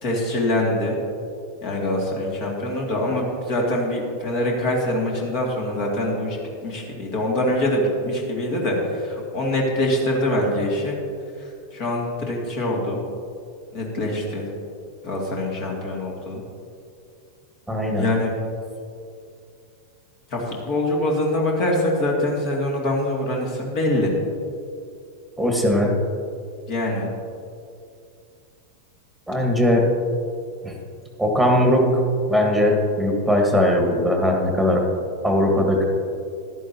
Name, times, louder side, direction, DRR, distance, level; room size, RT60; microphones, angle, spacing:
voice 1, 0.0-1.0 1.6-6.4 6.6-10.9 11.4-13.0 13.7-14.5 15.0-16.4 18.0-18.4 20.3-24.1 26.7-27.1, left 1 dB, 40° left, -1 dB, 2.4 m, -24 dB
voice 2, 17.7-18.0 25.4-25.9 29.3-29.9 30.6-30.7 31.2-32.0 32.3-34.9 35.2-35.9, left 1 dB, ahead, 1 dB, 1.8 m, -19 dB
14.5 x 11.5 x 2.9 m, 2.4 s
figure-of-eight pair, 90°, 0 cm